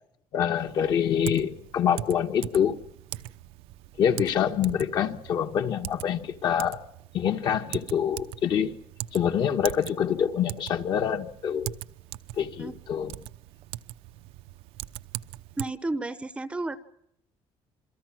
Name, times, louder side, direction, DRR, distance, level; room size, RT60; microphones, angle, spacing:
voice 1, 0.3-2.8 4.0-6.8 7.1-8.8 9.1-11.7 12.4-13.1, left 8 dB, 45° left, 1.5 m, -26 dB
Typing, 0.6-15.7, right 15 dB, 85° right, 0.9 m, -41 dB
voice 2, 15.6-16.8, right 2 dB, 10° right, 0.8 m, -32 dB
28.0 x 23.0 x 6.1 m
cardioid pair, 175°, 10 cm